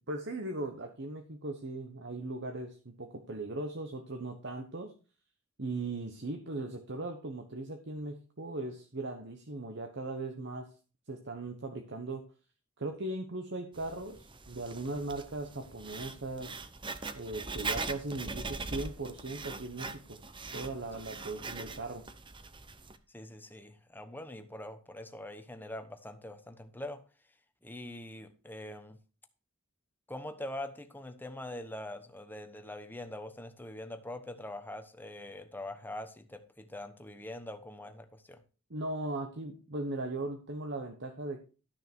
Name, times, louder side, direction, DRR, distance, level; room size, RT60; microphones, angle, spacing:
voice 1, 0.0-4.9 5.6-10.7 11.1-12.3 12.8-16.6 17.1-20.2 20.5-22.0 38.7-41.4, right 2 dB, 55° right, 1.2 m, -38 dB
Writing, 13.7-23.0, right 3 dB, 20° right, 0.8 m, -41 dB
voice 2, 23.1-27.0 27.6-29.0 30.1-38.4, left 1 dB, 10° left, 1.0 m, -43 dB
13.0 x 6.4 x 4.5 m
head